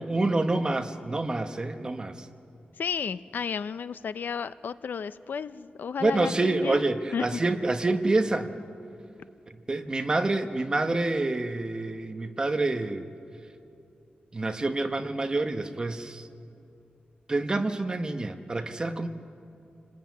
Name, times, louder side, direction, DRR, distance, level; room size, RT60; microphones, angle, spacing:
voice 1, 0.0-2.3 6.0-8.6 9.7-13.1 14.3-16.3 17.3-19.1, right 2 dB, 25° right, 7 dB, 1.1 m, -27 dB
voice 2, 2.8-6.8 7.1-7.4, left 6 dB, 70° left, 14 dB, 0.6 m, -33 dB
28.0 x 19.5 x 9.4 m, 2.7 s
wide cardioid pair, 175°, 3 cm